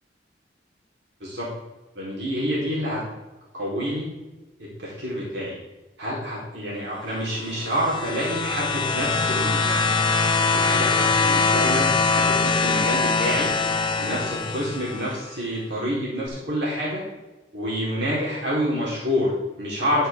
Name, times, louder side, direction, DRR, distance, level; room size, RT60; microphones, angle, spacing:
voice 1, 1.9-3.0 3.5-4.1 4.6-5.6 6.0-10.0 10.5-13.5 14.0-17.0 17.5-20.1, equal, 85° right, -6 dB, 4.2 m, -28 dB
sound 1, 7.4-15.2 16.3-16.4, left 4 dB, 30° left, 0.8 m, -23 dB
10.5 x 9.9 x 3.8 m, 1.1 s
head